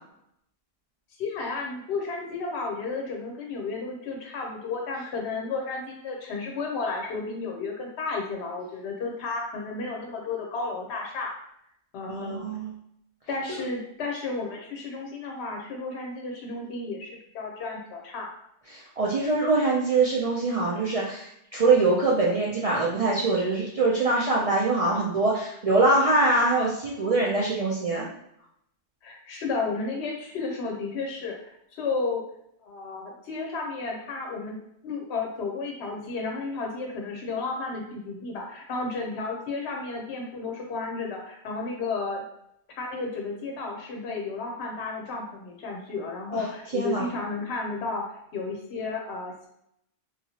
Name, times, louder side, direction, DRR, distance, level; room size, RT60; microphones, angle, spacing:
voice 1, 1.2-11.3 11.9-12.5 13.3-18.3 29.0-32.2 32.6-34.6 34.8-42.2 42.8-48.0 48.3-49.5, left 3 dB, 70° left, 1 dB, 0.8 m, -32 dB
voice 2, 12.1-12.7 18.7-28.0 46.3-46.4 46.7-47.1, right 3 dB, 60° right, -5 dB, 0.3 m, -23 dB
2.9 x 2.4 x 2.7 m, 0.74 s
omnidirectional pair, 1.2 m